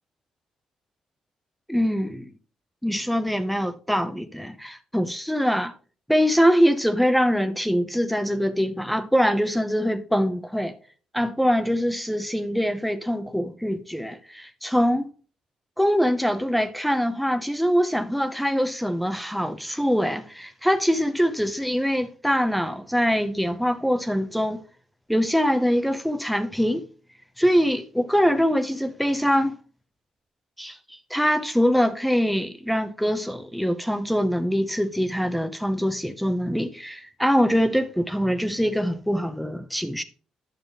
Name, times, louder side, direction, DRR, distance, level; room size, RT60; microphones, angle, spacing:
voice 1, 1.7-2.3 2.8-5.7 6.1-10.7 11.1-15.1 15.8-24.6 25.1-26.9 27.4-29.6 30.6-40.0, equal, ahead, 0.7 m, -23 dB
9.3 x 6.7 x 3.0 m
supercardioid pair, 60°, 2 cm